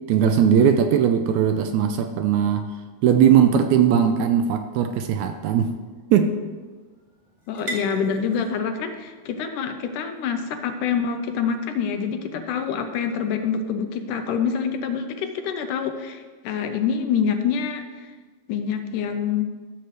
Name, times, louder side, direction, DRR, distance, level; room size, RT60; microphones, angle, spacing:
voice 1, 0.1-2.7 3.0-5.7 6.1-6.4, right 8 dB, 80° right, 7 dB, 1.7 m, -19 dB
sound 1, 4.6-11.9, right 1 dB, 30° right, 0.9 m, -43 dB
voice 2, 7.5-18.1 18.5-19.5, left 7 dB, 85° left, 6 dB, 2.1 m, -26 dB
14.0 x 6.8 x 3.2 m, 1.4 s
omnidirectional pair, 3.7 m